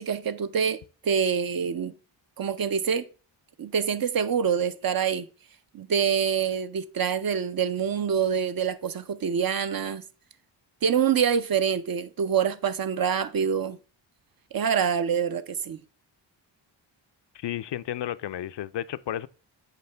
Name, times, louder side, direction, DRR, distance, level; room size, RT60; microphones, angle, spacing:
voice 1, 0.0-1.9 2.4-3.1 3.6-5.3 5.7-10.0 10.8-13.8 14.5-15.8, right 7 dB, 50° right, 0.6 m, -26 dB
voice 2, 17.3-19.3, left 12 dB, 65° left, 0.5 m, -32 dB
8.1 x 4.8 x 3.4 m
cardioid pair, 60°, 47 cm